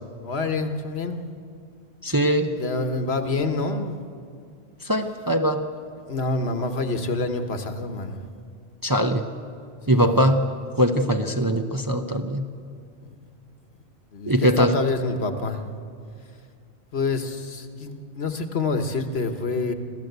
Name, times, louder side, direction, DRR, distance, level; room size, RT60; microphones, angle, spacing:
voice 1, 0.2-1.3 2.1-4.0 6.1-8.2 9.9-10.3 13.0-13.1 14.1-15.6 16.9-19.7, left 3 dB, 65° left, 7 dB, 1.5 m, -27 dB
voice 2, 2.0-2.5 4.8-5.6 8.8-9.2 9.9-10.4 10.8-12.5 14.3-14.7, equal, 20° right, 5 dB, 0.8 m, -21 dB
26.0 x 15.0 x 8.1 m, 2.3 s
omnidirectional pair, 1.2 m